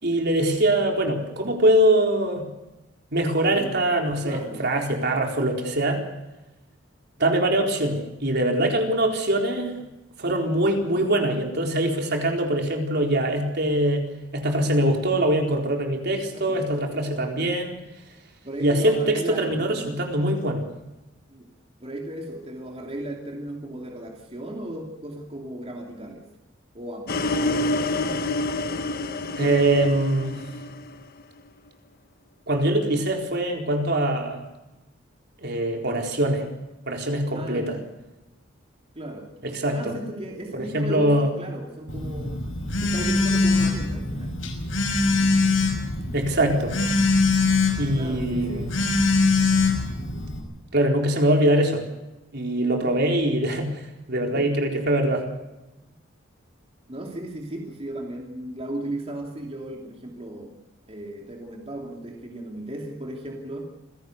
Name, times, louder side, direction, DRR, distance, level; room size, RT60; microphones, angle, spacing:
voice 1, 0.0-2.5 3.1-6.0 7.2-9.8 10.2-14.1 14.3-17.8 18.6-20.6 29.4-30.4 32.5-34.4 35.4-36.4 36.9-37.8 39.4-39.9 40.5-41.3 46.1-46.8 47.8-48.7 50.7-51.8 52.3-55.3, right 1 dB, 55° right, 2 dB, 4.2 m, -23 dB
voice 2, 4.2-4.6 10.9-11.3 16.3-16.7 18.4-19.9 21.3-21.5 21.8-26.3 26.7-28.1 37.3-37.8 38.9-39.3 39.7-42.4 42.8-44.4 47.9-48.9 54.3-54.6 56.9-60.6 60.9-63.6, right 1 dB, 30° right, 0 dB, 2.9 m, -36 dB
sound 1, 27.1-31.2, left 2 dB, 50° left, 1.3 m, -27 dB
Telephone, 41.9-50.4, left 3 dB, 80° left, 6.0 m, -23 dB
27.0 x 17.0 x 6.7 m, 1.0 s
head